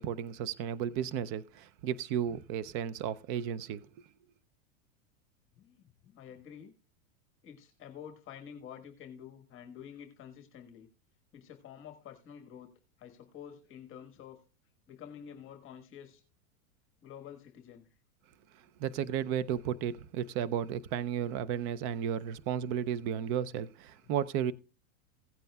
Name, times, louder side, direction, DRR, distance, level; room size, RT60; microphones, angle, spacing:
voice 1, 0.0-3.8 18.8-24.5, right 9 dB, 30° right, 0.4 m, -33 dB
voice 2, 5.5-6.7 7.4-10.9 11.3-14.4 14.9-16.2 17.0-17.9 24.0-24.1, left 8 dB, 25° left, 1.4 m, -49 dB
16.5 x 9.0 x 2.3 m
supercardioid pair, 135°, 45 cm